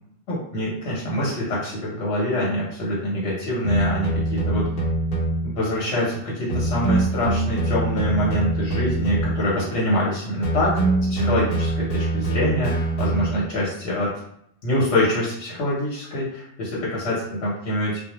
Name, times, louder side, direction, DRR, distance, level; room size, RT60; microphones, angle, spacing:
voice 1, 0.3-4.7 5.4-10.7 11.1-14.1 14.6-18.0, left 1 dB, 75° left, -6 dB, 1.0 m, -25 dB
sound 1, 3.6-5.5 6.5-9.6 10.4-13.6, right 2 dB, 55° left, 0.8 m, -24 dB
2.3 x 2.0 x 2.9 m, 0.73 s
omnidirectional pair, 1.1 m